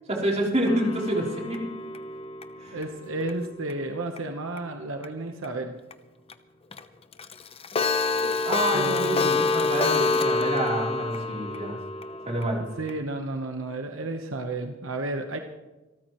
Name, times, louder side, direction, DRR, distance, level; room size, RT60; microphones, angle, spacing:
voice 1, 0.1-1.6 2.6-2.8 8.5-11.8 12.3-12.6, right 1 dB, 35° right, -2 dB, 3.6 m, -27 dB
Clock, 0.7-3.7 4.2-4.3 4.6-4.7 5.0-5.1 5.4-5.5 5.9-6.0 6.3-6.4 6.7-6.8 7.1-13.0, left 4 dB, 30° left, 0.8 m, -27 dB
voice 2, 2.7-5.7 8.7-9.4 12.8-15.4, right 2 dB, 75° right, 4 dB, 1.1 m, -32 dB
27.0 x 13.5 x 3.1 m, 1.1 s
head